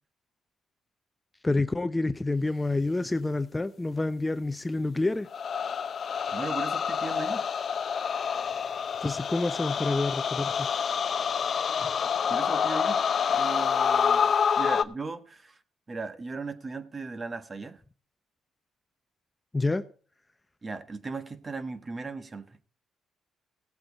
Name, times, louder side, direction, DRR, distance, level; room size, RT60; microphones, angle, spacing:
voice 1, 1.4-5.3 9.0-10.7 11.8-11.9 19.5-19.8, left 2 dB, 15° left, 0.7 m, -28 dB
sound 1, 5.3-14.8, left 7 dB, 50° left, 0.7 m, -27 dB
voice 2, 6.3-7.5 12.3-13.0 13.3-15.6 15.9-17.8 20.6-22.6, right 3 dB, 30° right, 1.4 m, -37 dB
17.0 x 7.8 x 4.1 m
cardioid pair, 90°, 0 cm